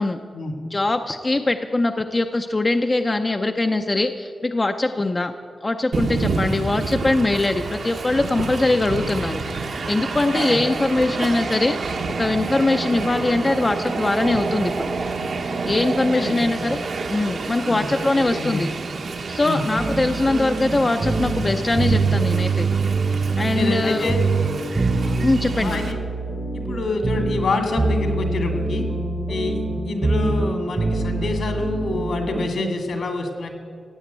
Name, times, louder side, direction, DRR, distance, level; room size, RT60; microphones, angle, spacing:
voice 1, 0.7-5.3 5.6-9.4 9.9-11.8 12.2-14.9 15.7-16.8 17.1-18.7 19.3-22.7 23.4-24.1 25.2-25.8, left 2 dB, 25° left, 6 dB, 0.5 m, -22 dB
Train, 5.9-25.9, right 4 dB, 60° right, 1.0 m, -29 dB
voice 2, 16.0-16.7 17.7-18.7 19.4-19.6 23.5-24.2 25.0-25.1 25.6-26.0 26.5-28.9 29.3-33.5, left 3 dB, 70° left, 5 dB, 2.1 m, -27 dB
sound 1, 19.8-32.5, right 3 dB, 30° right, 0.9 m, -24 dB
16.0 x 8.5 x 8.3 m, 2.2 s
wide cardioid pair, 140°, 0 cm